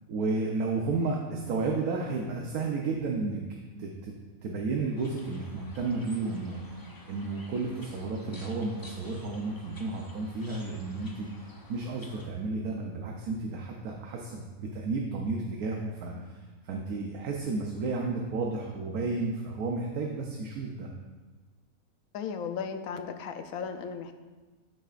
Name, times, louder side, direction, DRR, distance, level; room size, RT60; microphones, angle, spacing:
voice 1, 0.1-3.4 3.8-11.3 11.7-16.4 16.6-20.9, right 3 dB, 85° right, 0 dB, 1.3 m, -32 dB
sound 1, 5.0-12.3, left 1 dB, 20° left, 0.5 m, -51 dB
voice 2, 22.1-24.1, left 6 dB, 75° left, 7 dB, 1.1 m, -36 dB
12.5 x 6.4 x 2.5 m, 1.3 s
omnidirectional pair, 1.5 m